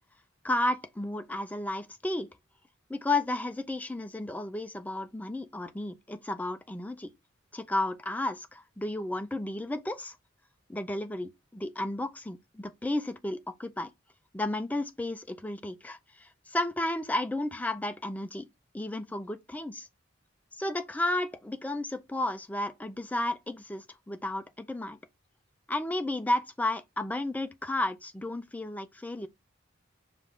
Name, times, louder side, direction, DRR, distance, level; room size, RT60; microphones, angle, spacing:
voice 1, 0.4-2.3 2.9-7.1 7.5-10.2 10.7-13.9 14.3-18.5 18.7-19.9 20.5-25.0 25.7-29.3, left 1 dB, 10° left, 0.3 m, -33 dB
5.1 x 2.4 x 3.1 m
head